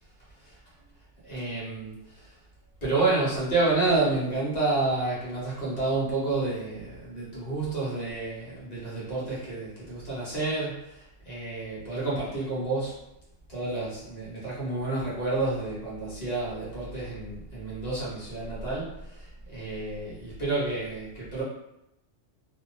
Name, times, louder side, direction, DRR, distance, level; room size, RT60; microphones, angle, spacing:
voice 1, 1.2-2.3 2.8-13.0 13.5-21.4, right 2 dB, 35° left, -8 dB, 1.1 m, -29 dB
2.8 x 2.1 x 2.6 m, 0.85 s
omnidirectional pair, 1.3 m